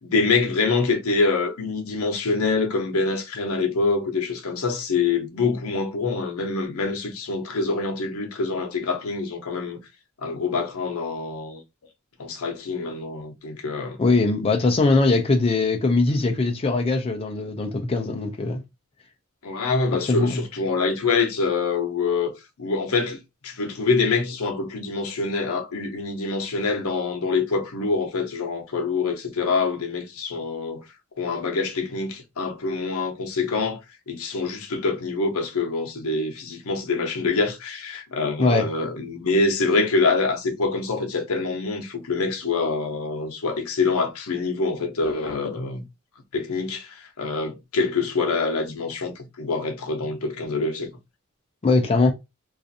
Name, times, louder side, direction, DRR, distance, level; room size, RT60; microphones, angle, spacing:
voice 1, 0.0-9.8 10.2-11.6 12.2-14.0 19.4-22.3 22.6-30.8 31.2-33.8 34.1-45.8 46.3-50.9, left 4 dB, 80° left, 0.6 m, -25 dB
voice 2, 14.0-18.6 20.1-20.4 38.4-38.7 51.6-52.1, left 3 dB, 25° left, 0.4 m, -21 dB
2.4 x 2.4 x 2.6 m
head